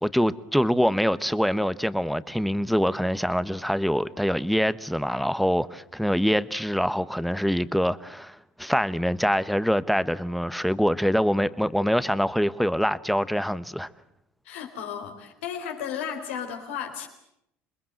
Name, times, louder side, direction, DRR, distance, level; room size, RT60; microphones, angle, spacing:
voice 1, 0.0-13.9, equal, ahead, 1.1 m, -24 dB
voice 2, 14.5-17.1, left 8 dB, 90° left, 3.9 m, -34 dB
27.0 x 21.5 x 7.8 m
supercardioid pair, 80°, 6 cm